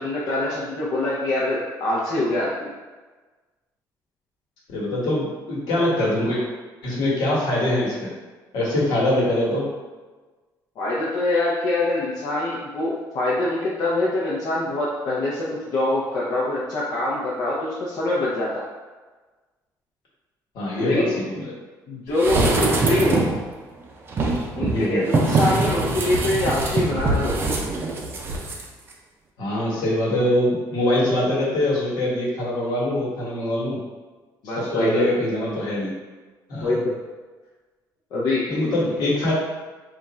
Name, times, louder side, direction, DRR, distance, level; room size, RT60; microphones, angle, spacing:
voice 1, 0.0-2.7 10.8-15.5 15.7-18.6 20.8-21.2 21.9-23.2 24.6-27.4 34.4-35.2 36.6-36.8 38.1-38.4 38.8-38.9, left 2 dB, 60° left, -7 dB, 0.7 m, -24 dB
voice 2, 4.7-6.4 6.8-8.1 8.5-9.7 20.5-21.5 24.7-25.0 29.4-33.8 34.4-35.9 36.5-36.8 38.5-39.3, left 1 dB, 75° left, -6 dB, 1.4 m, -23 dB
sound 1, 22.2-23.4 24.1-28.6 28.9-29.0, right 2 dB, 30° right, 0.5 m, -23 dB
3.5 x 2.5 x 4.2 m, 1.3 s
cardioid pair, 165°, 8 cm